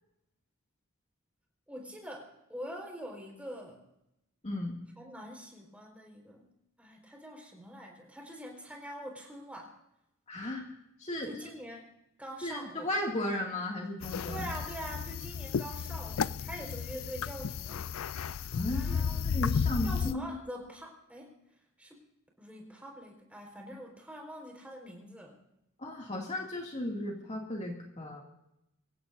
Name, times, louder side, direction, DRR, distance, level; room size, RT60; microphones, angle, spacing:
voice 1, 1.7-3.8 5.0-6.5 6.8-9.8 11.2-12.9 14.3-17.9 18.7-19.2 19.8-21.4 21.8-22.0 22.4-25.3, equal, 5° right, 0 dB, 4.5 m, -44 dB
voice 2, 4.4-4.7 10.3-10.6 11.0-11.3 12.4-14.4 18.5-20.3 25.8-28.2, left 1 dB, 35° left, -1 dB, 2.3 m, -35 dB
sound 1, 14.0-20.1, left 6 dB, 75° left, 0.4 m, -33 dB
25.5 x 16.0 x 2.6 m, 0.85 s
head